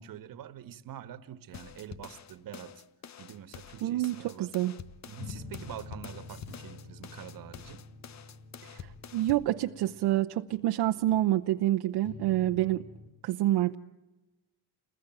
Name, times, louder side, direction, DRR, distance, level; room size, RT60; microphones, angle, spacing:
voice 1, 0.0-2.8 3.2-4.5 5.1-7.9, right 10 dB, 50° right, 1.6 m, -45 dB
sound 1, 1.5-9.5, left 8 dB, 40° left, 1.0 m, -47 dB
voice 2, 3.8-4.7 8.6-12.8 13.2-13.8, right 14 dB, 70° right, 0.9 m, -27 dB
sound 2, 5.2-10.1 10.5-11.3 12.0-13.1, left 3 dB, 60° left, 2.8 m, -47 dB
30.0 x 21.0 x 9.1 m
cardioid pair, 165°, 42 cm